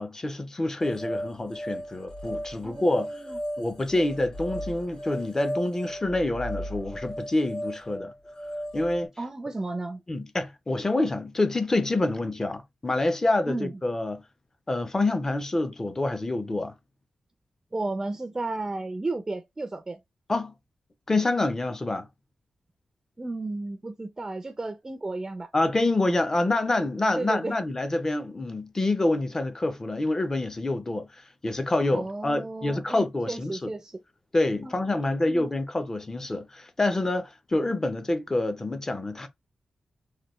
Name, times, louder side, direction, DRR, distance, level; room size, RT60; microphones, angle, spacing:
voice 1, 0.0-3.1 3.6-8.1 8.7-9.1 10.1-14.2 14.7-16.7 20.3-20.5 21.1-22.1 25.5-33.7 34.3-39.3, left 2 dB, 25° left, 0.6 m, -27 dB
sound 1, 0.8-9.1, equal, 40° left, 1.3 m, -36 dB
voice 2, 2.6-3.4 9.2-10.0 13.5-13.8 17.7-20.0 23.2-25.5 27.1-27.6 31.9-34.0 34.6-34.8 35.0-35.5, right 2 dB, 25° right, 0.4 m, -33 dB
3.3 x 2.2 x 3.0 m
cardioid pair, 85°, 2 cm